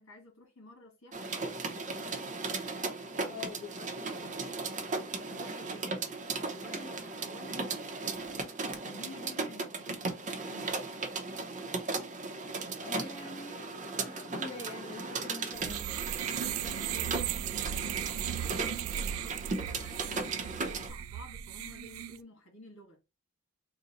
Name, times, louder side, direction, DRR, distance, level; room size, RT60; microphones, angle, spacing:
voice 1, 0.0-3.5 5.3-8.6 8.8-10.9 12.8-13.3 16.4-23.0, left 1 dB, 70° left, 2.1 m, -53 dB
sound 1, 1.1-20.9, right 3 dB, 35° right, 0.7 m, -37 dB
voice 2, 3.3-4.3 12.8-16.1, left 3 dB, 25° left, 0.8 m, -45 dB
sound 2, 15.5-22.2, right 10 dB, 75° right, 0.3 m, -36 dB
3.8 x 2.2 x 4.0 m
head